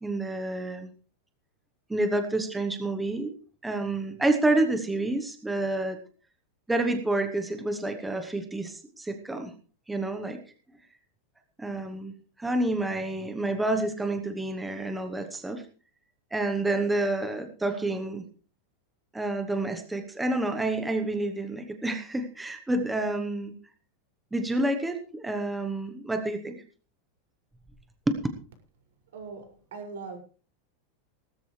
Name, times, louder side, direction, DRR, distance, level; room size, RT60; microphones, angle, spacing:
voice 1, 0.0-0.9 1.9-3.3 3.6-6.0 6.7-9.5 9.9-10.4 11.6-15.6 16.3-18.2 19.1-23.5 24.3-26.6 28.1-28.2, right 2 dB, 5° right, 1.0 m, -29 dB
voice 2, 29.1-30.2, right 4 dB, 85° right, 6.1 m, -40 dB
18.5 x 13.0 x 3.3 m
supercardioid pair, 175°, 0 cm